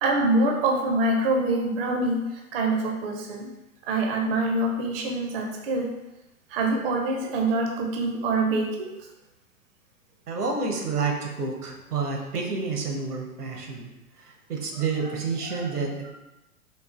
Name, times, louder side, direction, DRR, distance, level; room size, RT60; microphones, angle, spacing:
voice 1, 0.0-3.5 3.8-5.9 6.5-8.9 15.0-15.1 15.4-15.7, right 2 dB, 40° right, 2 dB, 0.5 m, -25 dB
voice 2, 10.3-13.9 14.2-16.1, right 4 dB, 80° right, 2 dB, 0.8 m, -29 dB
4.5 x 2.3 x 2.4 m, 0.98 s
figure-of-eight pair, 110°, 45 cm